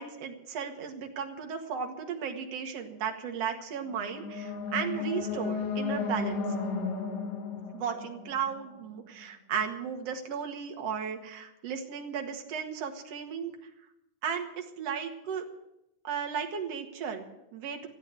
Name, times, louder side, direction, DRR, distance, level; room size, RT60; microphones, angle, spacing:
voice 1, 0.0-6.5 7.7-13.5 14.2-15.4 16.0-17.9, right 7 dB, 60° right, 3 dB, 2.7 m, -35 dB
sound 1, 3.9-9.0, left 4 dB, 70° left, 3.0 m, -34 dB
15.0 x 9.0 x 9.6 m, 0.86 s
omnidirectional pair, 3.4 m